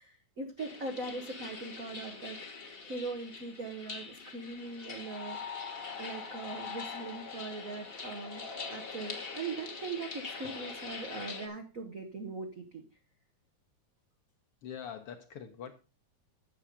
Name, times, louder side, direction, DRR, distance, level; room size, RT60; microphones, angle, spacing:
voice 1, 0.0-5.7 6.0-8.4 8.7-12.8, right 3 dB, 85° right, 4 dB, 0.7 m, -41 dB
sound 1, 0.6-11.5, left 4 dB, 45° left, 0.7 m, -43 dB
voice 2, 14.6-15.7, left 8 dB, 65° left, 7 dB, 1.5 m, -43 dB
8.7 x 6.9 x 5.0 m, 0.31 s
omnidirectional pair, 3.3 m